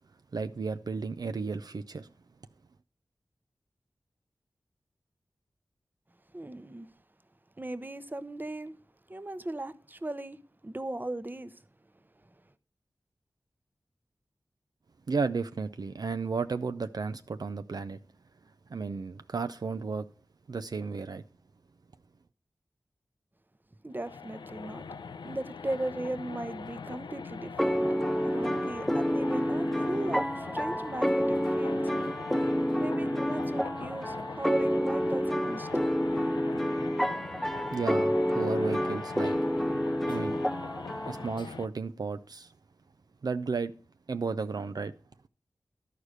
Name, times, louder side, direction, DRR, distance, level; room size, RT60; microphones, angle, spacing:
voice 1, 0.3-2.1 15.1-18.0 18.7-20.1 20.5-21.2 37.7-39.3 40.1-40.4 41.1-42.5 43.2-43.7 44.1-44.9, right 4 dB, 60° right, 0.5 m, -33 dB
voice 2, 6.3-6.9 7.6-8.7 9.1-11.6 23.8-24.9 25.2-27.8 28.2-31.8 32.8-35.9, right 1 dB, 25° right, 0.8 m, -37 dB
sound 1, 23.9-41.7, left 5 dB, 85° left, 0.6 m, -42 dB
sound 2, 27.6-41.3, equal, 5° left, 0.4 m, -29 dB
12.0 x 4.9 x 6.5 m
cardioid pair, 45°, 8 cm